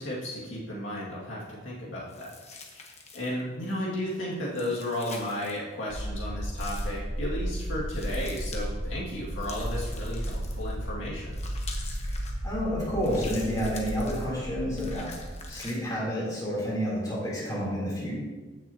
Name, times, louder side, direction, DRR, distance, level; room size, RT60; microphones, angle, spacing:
voice 1, 0.0-2.3 3.1-11.4, left 1 dB, 80° left, -5 dB, 2.1 m, -34 dB
sound 1, 2.1-3.4 4.5-5.6 6.6-7.0 7.9-8.7 9.4-10.7 11.3-12.3 13.0-14.3 14.8-15.8, left 4 dB, 35° left, 1.1 m, -45 dB
sound 2, 5.9-15.4, right 1 dB, 45° right, 1.1 m, -34 dB
voice 2, 12.4-15.1 15.5-18.1, equal, 20° left, -7 dB, 3.3 m, -30 dB
15.5 x 6.3 x 2.9 m, 1.3 s
head